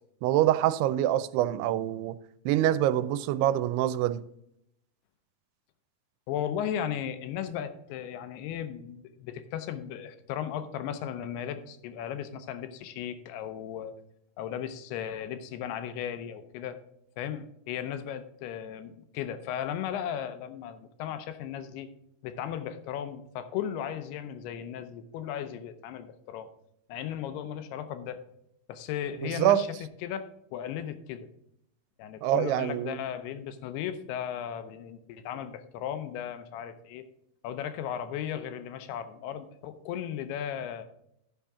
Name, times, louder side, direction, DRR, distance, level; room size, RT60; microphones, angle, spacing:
voice 1, 0.2-2.2 2.5-4.2 29.2-29.6 32.2-33.0, right 12 dB, 90° right, 2.6 m, -25 dB
voice 2, 6.3-14.0 14.4-16.8 17.2-21.9 22.2-26.5 26.9-28.2 28.7-29.7 30.0-31.3 32.0-37.1 37.4-40.8, left 9 dB, 85° left, 2.8 m, -36 dB
13.5 x 5.7 x 3.6 m
omnidirectional pair, 4.6 m